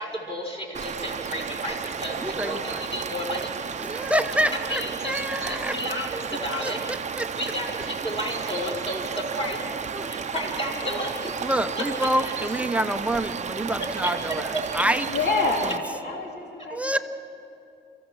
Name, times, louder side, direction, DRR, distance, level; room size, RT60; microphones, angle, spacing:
voice 1, 0.0-3.9 4.7-5.2 5.4-6.8 7.4-9.7 10.1-11.5, left 1 dB, 30° left, -2 dB, 5.4 m, -32 dB
sound 1, 0.7-15.8, right 6 dB, 35° right, 0.8 m, -32 dB
voice 2, 2.2-2.8 3.8-5.8 6.3-7.3 8.3-10.1 10.8-11.1 11.4-15.1 15.6-15.8 16.7-17.0, right 1 dB, 5° right, 8 dB, 0.8 m, -28 dB
voice 3, 15.1-16.8, left 3 dB, 55° left, 1 dB, 2.7 m, -27 dB
24.0 x 15.5 x 7.6 m, 2.7 s
cardioid pair, 90°, 20 cm